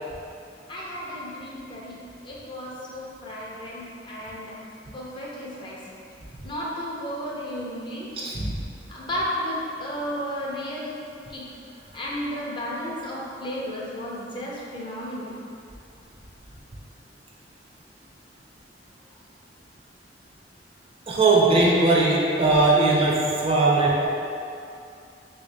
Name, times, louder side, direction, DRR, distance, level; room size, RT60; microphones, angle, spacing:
voice 1, 0.7-4.6 4.9-5.8 6.4-8.1 8.9-11.0 11.3-11.5 11.9-15.4, equal, 30° left, -5 dB, 0.5 m, -33 dB
voice 2, 8.2-8.5 21.1-24.1, right 2 dB, 35° right, -4 dB, 0.4 m, -19 dB
3.3 x 2.7 x 3.3 m, 2.6 s
head